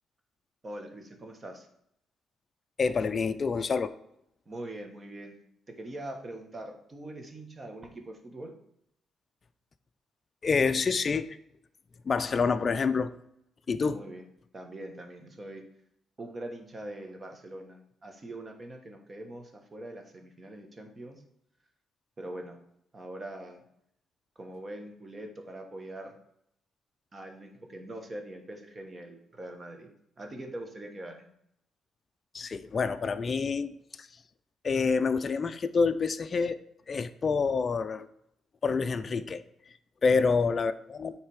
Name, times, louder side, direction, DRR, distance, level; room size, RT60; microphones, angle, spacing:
voice 1, 0.6-1.7 4.5-5.4 5.7-8.5 13.9-14.2 14.5-15.6 16.2-21.2 22.2-22.6 22.9-23.6 24.3-26.2 27.1-29.9 30.2-31.3 40.1-40.4, right 1 dB, 30° right, 4 dB, 1.3 m, -42 dB
voice 2, 2.8-3.9 10.4-11.4 12.0-13.1 13.7-14.0 32.3-33.7 34.0-34.1 34.6-36.6 36.9-38.1 38.6-39.4 40.0-41.1, left 5 dB, 40° left, 11 dB, 0.4 m, -27 dB
8.9 x 3.3 x 4.8 m, 0.75 s
cardioid pair, 90°, 0 cm